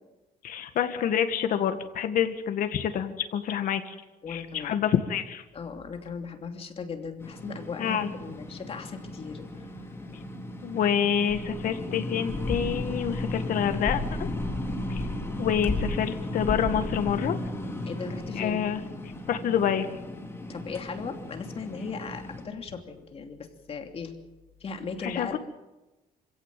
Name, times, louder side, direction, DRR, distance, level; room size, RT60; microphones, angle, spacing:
voice 1, 0.4-4.0 4.3-5.4 7.8-8.1 10.6-14.3 14.9-15.0 15.4-17.4 18.4-18.8 19.3-19.9 25.0-25.4, left 9 dB, 70° left, 8 dB, 1.9 m, -27 dB
voice 2, 4.2-4.8 5.5-9.6 17.9-18.6 20.5-24.1 24.6-25.4, left 5 dB, 40° left, 4 dB, 3.0 m, -37 dB
sound 1, 7.2-22.4, left 1 dB, 15° left, 4.1 m, -34 dB
26.5 x 16.5 x 7.7 m, 1.0 s
cardioid pair, 125°, 14 cm